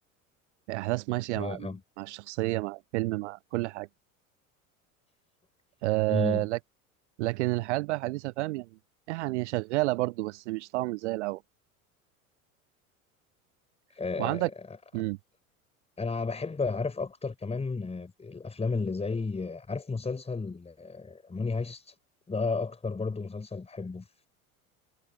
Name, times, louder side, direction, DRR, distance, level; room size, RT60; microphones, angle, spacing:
voice 1, 0.7-3.9 5.8-6.6 7.2-8.7 9.1-11.4 14.2-14.5 14.9-15.2, right 21 dB, 55° right, 0.7 m, -30 dB
voice 2, 1.3-1.8 6.1-6.5 13.9-14.5 16.0-21.9 22.3-24.1, left 4 dB, 15° left, 5.1 m, -33 dB
figure-of-eight pair, 75°, 42 cm